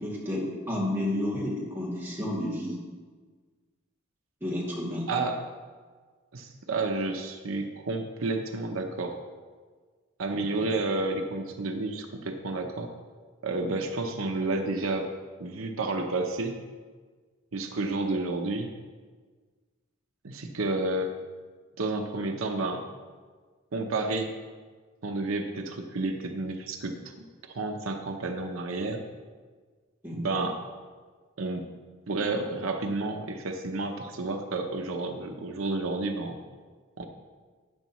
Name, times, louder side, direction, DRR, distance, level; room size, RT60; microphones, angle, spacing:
voice 1, 0.0-2.8 4.4-5.1 10.3-10.7 30.0-30.2, left 1 dB, 10° right, -6 dB, 2.5 m, -31 dB
voice 2, 5.1-5.4 6.3-9.2 10.2-12.9 13.4-15.1 15.4-16.6 17.5-18.7 20.2-21.1 21.8-22.8 23.7-24.3 25.0-27.1 27.4-29.0 30.1-30.6 31.4-31.6 32.1-36.4 37.0-37.1, right 2 dB, 80° right, 4 dB, 0.8 m, -30 dB
12.5 x 9.1 x 3.1 m, 1.5 s
head